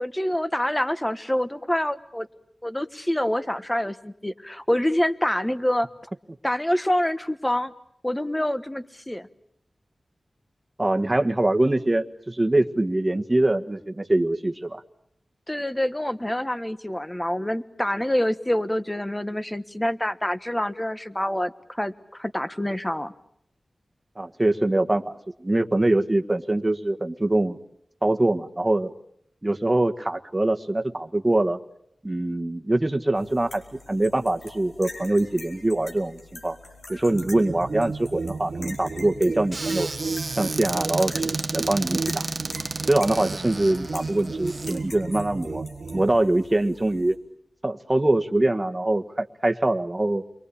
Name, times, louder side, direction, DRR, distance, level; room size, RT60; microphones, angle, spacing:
voice 1, 0.0-2.3 2.6-5.9 6.4-7.7 8.0-9.3 15.5-23.1, left 1 dB, 15° left, 11 dB, 1.3 m, -26 dB
voice 2, 10.8-14.8 24.2-27.6 28.0-28.9 29.4-31.6 32.0-36.6 36.9-39.9 40.3-42.3 42.9-45.6 45.9-47.2 47.6-50.2, right 2 dB, 20° right, 6 dB, 1.6 m, -23 dB
sound 1, 33.1-47.2, left 2 dB, 90° left, 4.9 m, -45 dB
sound 2, 37.1-46.2, right 4 dB, 85° right, 1.2 m, -33 dB
Squeak / Cupboard open or close, 39.5-44.8, right 3 dB, 40° right, 1.1 m, -32 dB
30.0 x 23.0 x 8.6 m, 0.71 s
wide cardioid pair, 85°, 0 cm